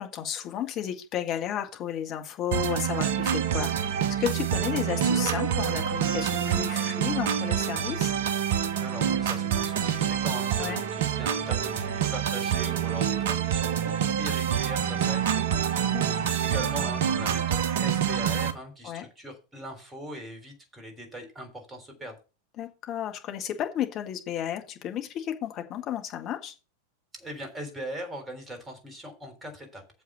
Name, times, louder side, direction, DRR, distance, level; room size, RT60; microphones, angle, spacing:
voice 1, 0.0-8.1 10.6-10.8 15.8-16.3 18.8-19.1 22.6-26.5, left 10 dB, 35° left, 5 dB, 1.9 m, -33 dB
sound 1, 2.5-18.5, right 9 dB, 55° right, 1.1 m, -27 dB
voice 2, 8.8-22.2 27.1-30.0, right 1 dB, 15° right, 4 dB, 3.7 m, -40 dB
7.5 x 5.6 x 7.4 m, 0.31 s
figure-of-eight pair, 90°, 0 cm